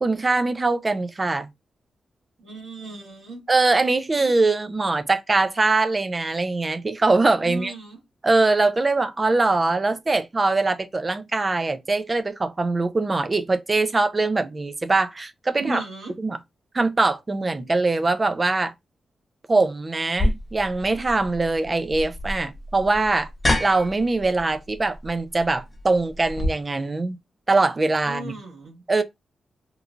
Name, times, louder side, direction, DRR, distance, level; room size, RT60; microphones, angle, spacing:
voice 1, 0.0-1.5 3.5-7.7 8.2-15.8 16.2-16.4 16.7-18.7 19.5-23.3 23.6-27.2 27.5-28.3 28.9-29.0, right 3 dB, 30° right, 0.3 m, -22 dB
voice 2, 2.4-3.4 7.4-8.0 15.5-16.1 28.0-28.8, right 2 dB, 90° right, 1.4 m, -35 dB
sound 1, 20.2-26.5, left 1 dB, 20° left, 0.7 m, -28 dB
3.0 x 2.2 x 2.5 m
cardioid pair, 100°, 0 cm